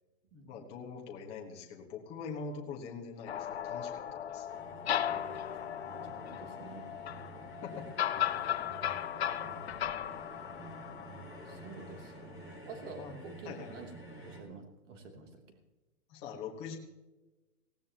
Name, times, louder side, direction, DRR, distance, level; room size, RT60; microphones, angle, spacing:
voice 1, 0.5-4.5 7.6-7.9 13.0-13.2 13.4-13.7 16.1-16.8, left 5 dB, 15° left, -1 dB, 1.3 m, -43 dB
sound 1, 3.3-12.1, left 10 dB, 45° left, 0.6 m, -36 dB
sound 2, 4.5-14.4, right 1 dB, 5° right, 1.6 m, -50 dB
voice 2, 5.1-5.4 5.8-6.9 10.6-11.2 11.4-13.9 14.2-15.6, right 4 dB, 55° right, 3 dB, 3.1 m, -49 dB
18.5 x 17.0 x 3.0 m, 1.1 s
hypercardioid pair, 175°, 45 cm